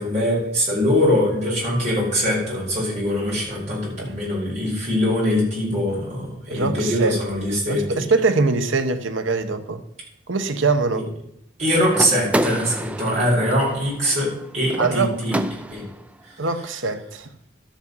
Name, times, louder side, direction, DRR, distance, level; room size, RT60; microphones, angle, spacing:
voice 1, 0.0-8.0 10.9-11.0 11.6-15.4 15.7-15.8, equal, 35° right, 5.3 m, -22 dB
voice 2, 6.5-7.2 7.7-9.8 10.3-11.1 14.8-15.1 16.4-17.3, right 3 dB, 85° right, 1.0 m, -22 dB
sound 1, 11.9-16.0, equal, 5° right, 0.4 m, -28 dB
12.5 x 7.3 x 5.5 m
head